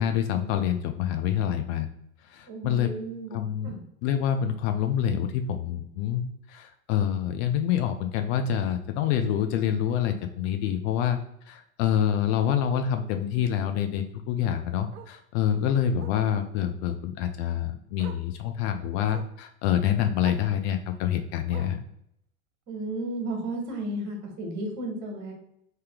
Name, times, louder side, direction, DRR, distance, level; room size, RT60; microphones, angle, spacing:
voice 1, 0.0-1.9 2.3-2.9 3.3-3.7 4.0-11.2 11.5-21.8, left 9 dB, 50° left, 7 dB, 0.5 m, -27 dB
voice 2, 2.5-3.8 22.7-25.3, right 1 dB, 40° right, 2 dB, 1.4 m, -33 dB
Bark, 8.5-8.6 9.0-9.2 9.5-9.6 9.9-10.0 11.4-11.5 14.0-14.1 14.9-15.2 16.0-16.3 17.5-17.6 18.0-18.3 19.1-19.4 20.2-20.5 21.5-21.9 22.9-23.0, right 10 dB, 55° right, 0.6 m, -46 dB
3.3 x 2.8 x 3.4 m, 0.73 s
hypercardioid pair, 85°, 43 cm